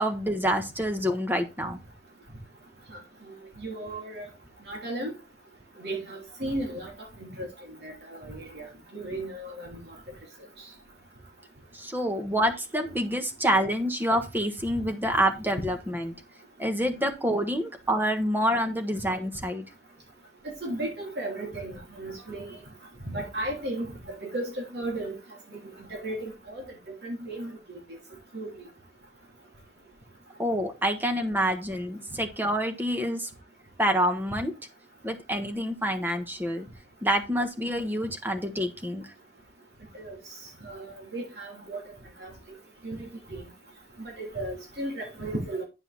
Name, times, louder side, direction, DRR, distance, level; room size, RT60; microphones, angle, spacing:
voice 1, 0.0-1.8 11.7-16.1 16.6-19.6 30.4-33.3 33.8-34.5 35.0-36.7 37.0-39.1, equal, 10° right, 1.3 m, -27 dB
voice 2, 3.6-4.3 4.7-5.1 5.8-6.9 7.2-7.5 7.8-8.7 8.9-9.8 20.6-22.6 23.0-25.2 25.9-26.6 27.0-27.5 28.3-28.5 39.9-40.2 40.6-41.8 42.2-42.3 42.8-43.4 44.0-45.6, right 1 dB, 65° right, 3.1 m, -35 dB
9.9 x 5.5 x 4.1 m
head